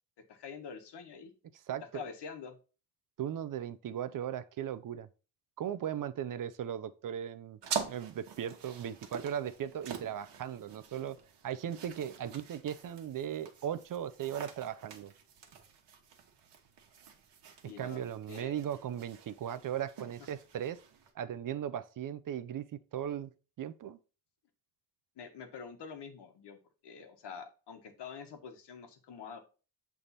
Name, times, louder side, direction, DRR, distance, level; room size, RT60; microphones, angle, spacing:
voice 1, 0.3-1.3 1.9-2.6 17.6-18.5 25.2-26.6 26.8-29.4, left 6 dB, 75° left, 1.2 m, -46 dB
voice 2, 1.7-2.0 3.2-5.1 5.6-7.6 7.9-11.2 11.4-15.1 17.6-20.8 21.2-24.0, right 9 dB, 50° right, 0.5 m, -38 dB
sound 1, 7.6-21.1, right 7 dB, 80° right, 1.3 m, -45 dB
7.4 x 3.5 x 4.0 m
wide cardioid pair, 170°, 41 cm